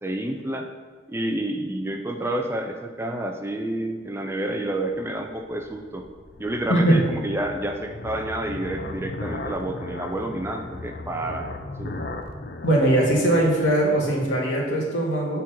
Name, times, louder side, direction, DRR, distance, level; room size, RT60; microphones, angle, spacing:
voice 1, 0.0-0.7 1.1-6.0 6.4-12.0, right 1 dB, 15° right, 4 dB, 0.5 m, -29 dB
sound 1, 4.7-14.2, left 2 dB, 50° left, 0.6 m, -37 dB
voice 2, 12.6-15.4, right 1 dB, 85° left, -3 dB, 2.2 m, -20 dB
8.4 x 4.5 x 5.7 m, 1.5 s
head